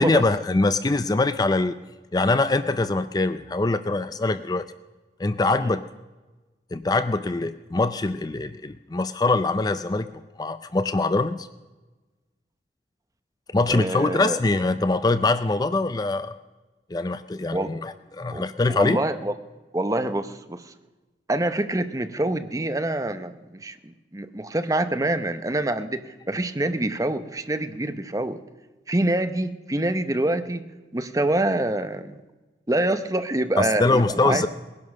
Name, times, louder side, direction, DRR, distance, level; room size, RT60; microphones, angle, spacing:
voice 1, 0.0-1.7 2.1-4.6 5.2-5.8 6.7-10.1 10.4-11.5 13.5-16.4 16.9-19.0 33.6-34.5, left 3 dB, 20° left, 12 dB, 0.4 m, -23 dB
voice 2, 13.7-14.4 17.5-17.7 18.3-19.4 19.7-20.6 21.3-28.4 28.9-30.6 30.9-32.1 32.7-34.5, right 1 dB, 20° right, 10 dB, 0.8 m, -26 dB
19.5 x 11.0 x 6.4 m, 1.2 s
head